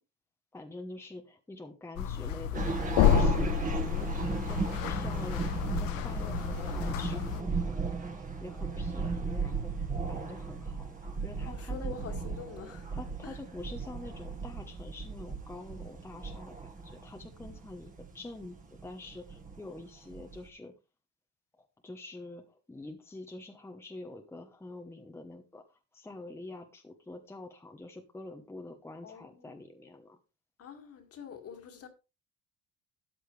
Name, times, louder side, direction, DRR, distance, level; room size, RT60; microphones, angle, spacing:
voice 1, 0.5-2.8 3.1-4.1 4.4-11.9 12.9-18.6 18.8-20.7 21.6-25.6 25.9-30.2, left 2 dB, 5° left, 1.0 m, -46 dB
sound 1, 2.0-7.4, left 10 dB, 85° left, 0.9 m, -30 dB
sound 2, 2.5-20.5, right 4 dB, 25° right, 1.7 m, -36 dB
voice 2, 11.4-13.0 13.2-13.4 29.0-29.6 30.6-31.9, left 6 dB, 45° left, 2.1 m, -46 dB
13.0 x 8.8 x 3.3 m
cardioid pair, 140°, 33 cm